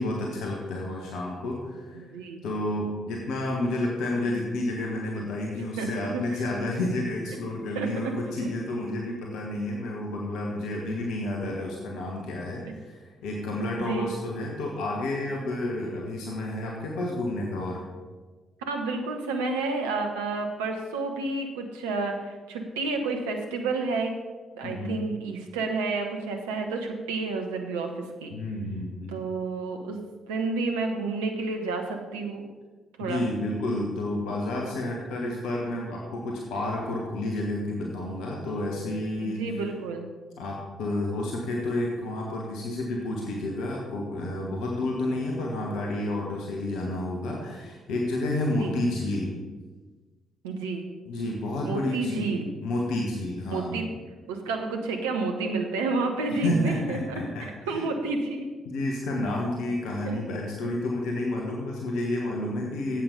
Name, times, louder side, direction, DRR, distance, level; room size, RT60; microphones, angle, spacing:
voice 1, 0.0-2.0 2.4-17.8 24.6-25.0 28.3-29.2 33.0-39.4 40.4-49.3 51.1-53.8 56.3-57.8 58.6-63.0, left 1 dB, 65° left, -1 dB, 1.5 m, -30 dB
voice 2, 2.1-2.4 5.8-6.2 7.7-8.1 13.7-14.1 18.6-24.1 24.5-27.9 28.2-28.3 29.1-30.0 30.3-32.5 33.0-33.2 39.2-40.1 48.6-48.7 50.4-50.9 51.6-52.5 53.5-53.8 54.3-57.0 57.4-58.5 60.0-60.2, right 3 dB, 75° right, 3 dB, 1.0 m, -30 dB
9.0 x 8.0 x 5.3 m, 1.3 s
figure-of-eight pair, 40°, 0 cm